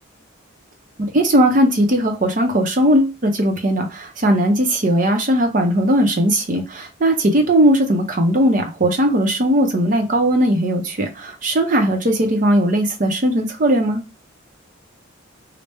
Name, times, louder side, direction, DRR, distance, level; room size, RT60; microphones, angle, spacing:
voice 1, 1.0-14.0, right 1 dB, 40° right, 0.6 m, -18 dB
3.4 x 2.0 x 4.1 m
head